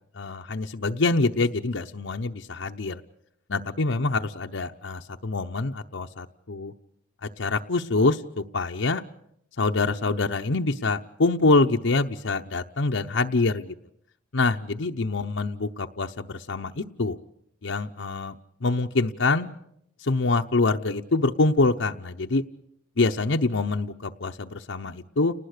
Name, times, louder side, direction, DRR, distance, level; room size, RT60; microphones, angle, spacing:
voice 1, 0.1-3.0 3.5-6.7 7.2-9.0 9.6-13.7 14.3-17.2 17.6-19.5 20.0-22.4 23.0-25.3, left 3 dB, 70° left, 3 dB, 0.8 m, -25 dB
30.0 x 19.5 x 6.7 m, 0.74 s
head